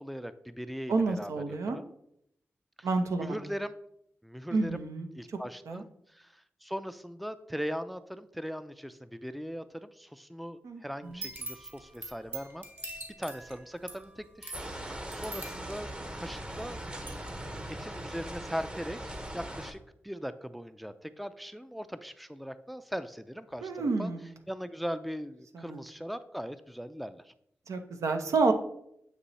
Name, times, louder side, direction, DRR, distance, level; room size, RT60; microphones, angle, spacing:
voice 1, 0.0-1.8 2.8-2.9 3.2-3.7 4.2-4.8 5.1-12.6 13.2-15.9 16.2-16.8 17.8-24.1 24.5-27.3, equal, ahead, 12 dB, 0.4 m, -39 dB
voice 2, 0.9-1.8 2.8-3.4 4.5-5.1 5.7-5.8 10.6-11.2 23.6-24.3 25.5-25.8 27.7-28.5, right 3 dB, 85° right, 6 dB, 0.7 m, -29 dB
sound 1, 11.0-16.7 17.0-17.1, right 2 dB, 40° right, 1.6 m, -43 dB
sound 2, 14.5-19.7, right 1 dB, 20° right, 0.8 m, -40 dB
8.3 x 3.0 x 4.1 m, 0.73 s
cardioid pair, 65°, 5 cm